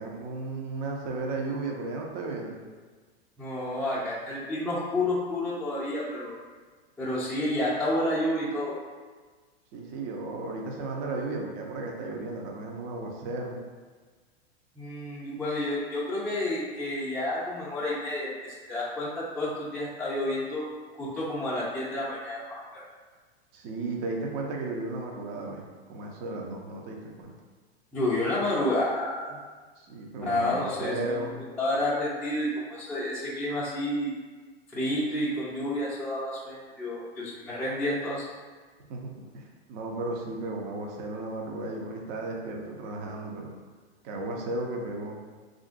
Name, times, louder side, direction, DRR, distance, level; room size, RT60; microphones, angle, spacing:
voice 1, 0.0-2.6 9.7-13.6 23.5-27.3 29.8-31.4 38.9-43.5 44.0-45.2, right 2 dB, 50° right, 0 dB, 0.6 m, -34 dB
voice 2, 3.4-6.3 7.0-8.7 14.8-20.7 20.9-22.8 27.9-29.4 30.3-31.2 31.6-34.1 34.7-38.2, left 1 dB, 5° left, -9 dB, 0.4 m, -30 dB
3.5 x 2.5 x 2.4 m, 1.4 s
hypercardioid pair, 115°, 31 cm